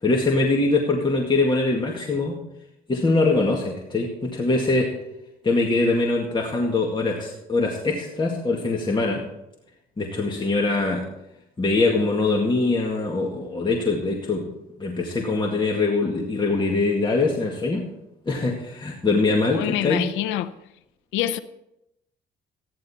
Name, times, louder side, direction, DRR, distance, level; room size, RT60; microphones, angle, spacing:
voice 1, 0.0-2.4 2.9-4.9 5.4-9.2 10.0-11.1 11.6-14.5 14.8-17.9 18.3-20.1, left 3 dB, 25° left, -1 dB, 2.0 m, -23 dB
voice 2, 19.5-20.5 21.1-21.4, left 12 dB, 90° left, 14 dB, 0.6 m, -25 dB
14.5 x 10.5 x 4.3 m, 0.85 s
cardioid pair, 90°, 19 cm